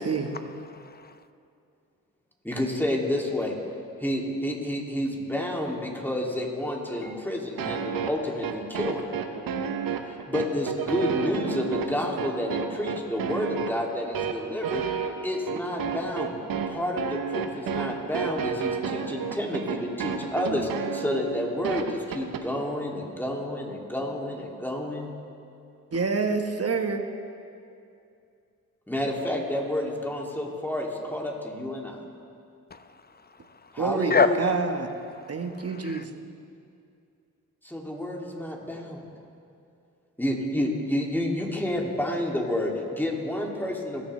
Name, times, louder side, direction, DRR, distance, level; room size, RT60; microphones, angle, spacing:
voice 1, 0.7-1.2 32.7-33.7 34.1-34.3 35.6-36.0, left 5 dB, 25° left, 10 dB, 0.8 m, -27 dB
voice 2, 2.4-3.6 4.0-9.1 10.0-14.8 15.2-16.3 16.7-25.1 28.9-32.0 33.7-34.5 37.6-39.1 40.2-44.1, left 1 dB, 5° left, -1 dB, 2.6 m, -30 dB
sound 1, 7.6-22.4, right 7 dB, 70° right, 0.9 m, -31 dB
voice 3, 25.9-27.0 33.8-34.9 35.3-36.1, right 4 dB, 40° right, 6 dB, 1.3 m, -27 dB
21.0 x 7.2 x 3.3 m, 2.5 s
supercardioid pair, 45°, 36 cm